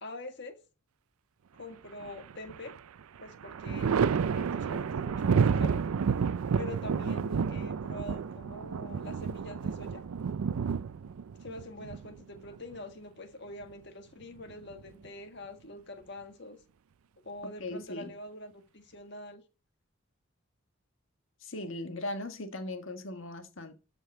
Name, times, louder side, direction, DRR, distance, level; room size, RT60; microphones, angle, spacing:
voice 1, 0.0-0.6 1.5-2.7 3.2-3.9 4.3-5.8 6.6-10.0 11.4-16.6 17.2-19.4, left 2 dB, 55° left, 1.6 m, -45 dB
Thunder, 2.0-2.8 3.2-12.7 14.2-15.1, right 6 dB, 90° right, 0.4 m, -30 dB
voice 2, 17.4-18.1 21.4-23.8, left 2 dB, 70° left, 1.7 m, -38 dB
13.0 x 5.2 x 4.3 m
head